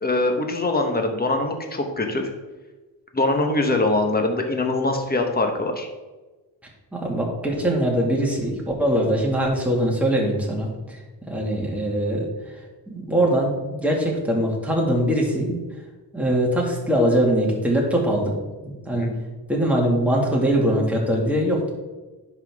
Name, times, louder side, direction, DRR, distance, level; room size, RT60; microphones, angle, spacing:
voice 1, 0.0-2.3 3.1-5.9 18.9-19.2, left 2 dB, 20° left, 4 dB, 1.2 m, -23 dB
voice 2, 6.9-11.0 11.3-12.3 12.9-15.6 16.1-18.4 18.6-19.1 19.5-21.7, right 1 dB, 5° right, -2 dB, 2.0 m, -22 dB
10.0 x 6.1 x 3.6 m, 1.2 s
wide cardioid pair, 125°, 44 cm